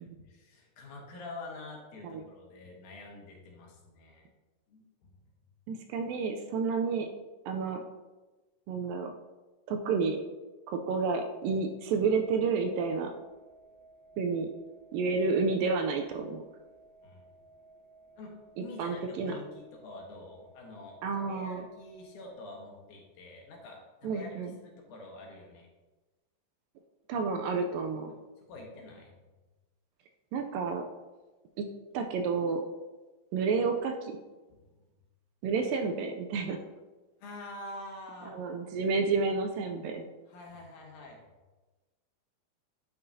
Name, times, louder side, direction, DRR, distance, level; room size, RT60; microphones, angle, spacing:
voice 1, 0.3-4.3 4.7-5.1 17.0-17.2 18.2-25.7 28.5-29.1 34.5-34.6 37.2-38.3 40.3-41.2, left 2 dB, 65° left, -1 dB, 2.5 m, -46 dB
voice 2, 5.7-7.1 7.5-7.8 8.7-9.1 9.7-10.2 10.7-13.1 14.2-14.5 14.9-16.4 18.6-19.4 21.0-21.7 24.0-24.5 27.1-28.1 30.3-30.8 31.6-31.7 31.9-32.6 33.3-34.2 35.4-36.6 38.3-40.1, right 4 dB, 80° right, 5 dB, 2.2 m, -30 dB
sound 1, 11.9-22.3, right 2 dB, 55° right, 3.7 m, -58 dB
9.7 x 5.6 x 2.7 m, 1.2 s
omnidirectional pair, 4.2 m